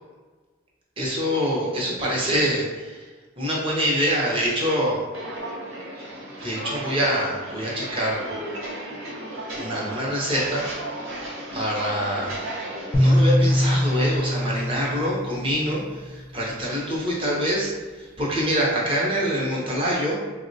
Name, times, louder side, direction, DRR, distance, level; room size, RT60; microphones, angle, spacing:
voice 1, 1.0-3.1 3.4-5.1 6.4-8.4 9.5-10.7 11.5-12.4 12.9-17.7 18.0-20.2, equal, 25° right, -4 dB, 0.6 m, -25 dB
Walk footsteps, 5.1-14.2, right 1 dB, 85° right, 0.7 m, -35 dB
sound 1, 12.9-16.2, equal, 35° left, 0.5 m, -22 dB
3.7 x 2.0 x 2.6 m, 1.4 s
head